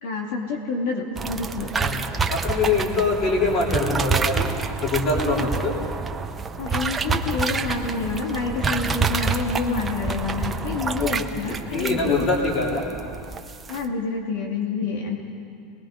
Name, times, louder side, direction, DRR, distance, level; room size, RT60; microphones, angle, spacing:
voice 1, 0.0-1.7 5.3-5.5 6.6-12.3 13.7-15.2, left 4 dB, 65° left, 0 dB, 2.5 m, -28 dB
sound 1, 1.2-13.8, right 4 dB, 10° right, 0.6 m, -28 dB
voice 2, 2.3-4.5 4.8-5.7 11.0-11.3 11.7-12.8, left 3 dB, 25° left, -2 dB, 3.4 m, -23 dB
29.5 x 20.5 x 5.2 m, 2.4 s
supercardioid pair, 180°, 0 cm